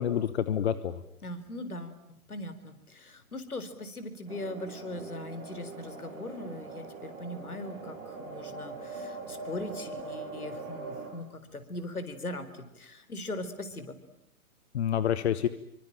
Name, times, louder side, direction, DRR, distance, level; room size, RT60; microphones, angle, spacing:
voice 1, 0.0-1.0 14.7-15.5, left 9 dB, 45° left, 14 dB, 1.3 m, -28 dB
voice 2, 1.2-2.0 2.3-14.0, left 1 dB, 75° left, 11 dB, 4.3 m, -40 dB
sound 1, 4.3-11.1, right 3 dB, 40° right, 7.3 m, -42 dB
27.0 x 24.5 x 9.0 m, 0.75 s
figure-of-eight pair, 125°, 45 cm